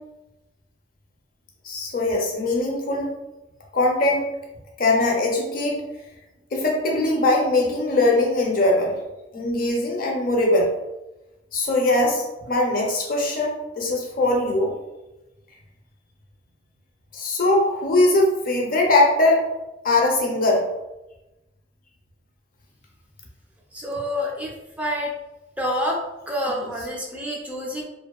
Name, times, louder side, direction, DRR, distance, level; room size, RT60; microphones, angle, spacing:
voice 1, 1.6-3.1 3.7-4.3 4.8-5.8 6.5-9.0 9.3-10.7 11.5-14.7 17.1-19.4 19.8-20.7, left 2 dB, 50° left, 0 dB, 0.5 m, -21 dB
voice 2, 23.7-25.1 25.6-26.0 26.3-27.9, equal, 10° right, -2 dB, 0.3 m, -28 dB
2.7 x 2.2 x 2.2 m, 1.0 s
head